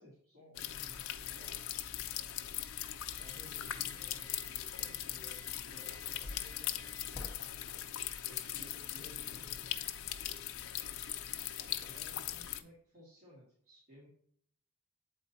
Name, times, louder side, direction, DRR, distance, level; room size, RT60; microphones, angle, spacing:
voice 1, 0.0-1.6 3.1-9.7 11.4-14.1, equal, 40° right, -8 dB, 2.5 m, -58 dB
sound 1, 0.5-12.6, left 12 dB, 65° left, 0.6 m, -40 dB
sound 2, 0.7-7.4, left 1 dB, 15° left, 0.6 m, -53 dB
8.2 x 4.3 x 4.1 m, 0.63 s
head